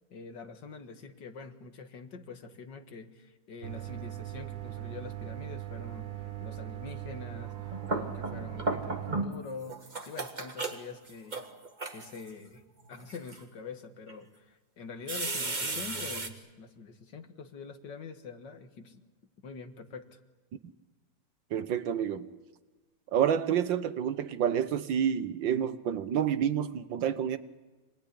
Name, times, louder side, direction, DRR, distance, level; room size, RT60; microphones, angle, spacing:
voice 1, 0.1-11.5 11.9-12.6 12.9-19.0 19.4-20.2, left 5 dB, 70° left, 7 dB, 2.3 m, -45 dB
sound 1, 3.6-9.2, right 15 dB, 55° right, 1.3 m, -40 dB
sound 2, 7.5-9.4 9.7-12.3 12.9-13.4 14.1-14.2 15.1-16.3, right 2 dB, 25° right, 1.7 m, -34 dB
voice 2, 21.5-22.3 23.1-27.4, right 9 dB, 80° right, 12 dB, 1.7 m, -28 dB
26.0 x 19.5 x 10.0 m, 1.3 s
omnidirectional pair, 2.0 m